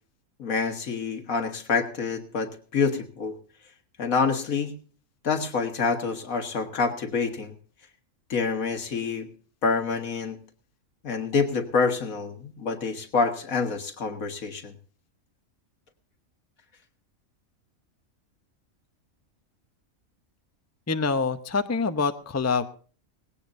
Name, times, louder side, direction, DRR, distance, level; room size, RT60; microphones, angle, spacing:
voice 1, 0.4-3.4 4.0-4.7 5.2-7.5 8.3-9.3 9.6-10.4 11.0-14.7, left 5 dB, 75° left, 6 dB, 2.1 m, -27 dB
voice 2, 20.9-22.7, left 4 dB, 15° left, 9 dB, 0.6 m, -25 dB
19.5 x 17.0 x 2.6 m, 0.41 s
omnidirectional pair, 1.5 m